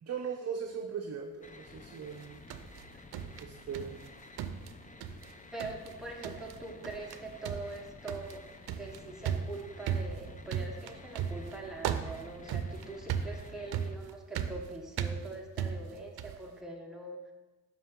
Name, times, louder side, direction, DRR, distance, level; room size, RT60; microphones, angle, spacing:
voice 1, 0.0-2.4 3.4-4.1, right 6 dB, 40° right, 3 dB, 0.7 m, -39 dB
sound 1, 1.4-14.0, left 3 dB, 20° left, 0.5 m, -52 dB
sound 2, 2.1-4.1 4.4-5.3 5.6-5.9 6.2-6.6 6.8-7.2 7.4-16.4, right 8 dB, 75° right, 0.6 m, -37 dB
voice 2, 5.5-8.5 8.8-17.3, right 2 dB, ahead, -1 dB, 1.1 m, -43 dB
7.4 x 5.9 x 3.7 m, 1.1 s
cardioid pair, 85°, 38 cm